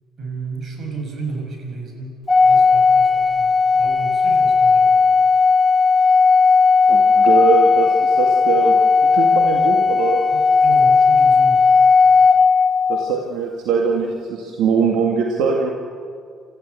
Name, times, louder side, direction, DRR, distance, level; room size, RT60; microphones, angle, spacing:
voice 1, 0.2-5.1 10.3-11.7, right 3 dB, 50° right, 2 dB, 6.8 m, -32 dB
Organ, 2.3-13.1, left 4 dB, 10° left, 1.0 m, -15 dB
voice 2, 6.9-8.7 9.0-10.2 12.9-15.7, right 5 dB, 80° right, 0 dB, 2.1 m, -21 dB
28.0 x 14.5 x 8.4 m, 2.1 s
supercardioid pair, 75°, 0 cm